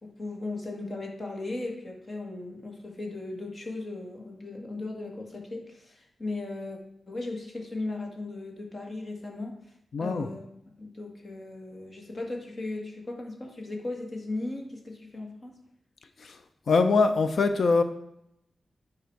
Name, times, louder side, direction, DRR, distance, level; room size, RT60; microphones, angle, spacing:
voice 1, 0.0-6.8 7.1-10.4 10.8-15.6, left 2 dB, 35° left, 1 dB, 1.8 m, -37 dB
voice 2, 9.9-10.3 16.2-16.4 16.7-17.8, left 4 dB, 60° left, 8 dB, 0.7 m, -23 dB
9.5 x 4.9 x 4.7 m, 0.77 s
wide cardioid pair, 105°, 0 cm